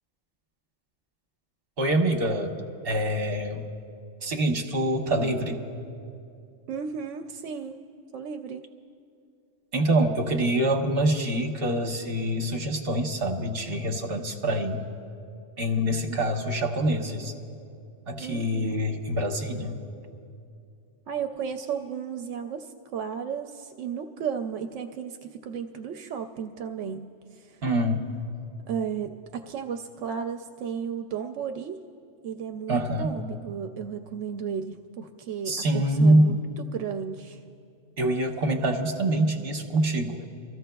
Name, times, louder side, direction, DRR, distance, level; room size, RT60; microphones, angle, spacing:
voice 1, 1.8-2.5 2.8-3.6 4.2-5.6 9.7-14.8 15.6-17.3 18.1-19.8 27.6-28.0 32.7-33.1 35.4-36.4 38.0-40.3, right 1 dB, 55° right, 2 dB, 1.2 m, -25 dB
voice 2, 6.7-7.8 8.1-8.6 18.2-18.7 21.1-27.6 28.7-31.8 32.2-37.4, right 7 dB, 85° right, 6 dB, 0.9 m, -34 dB
29.0 x 14.5 x 2.3 m, 2.5 s
omnidirectional pair, 1.2 m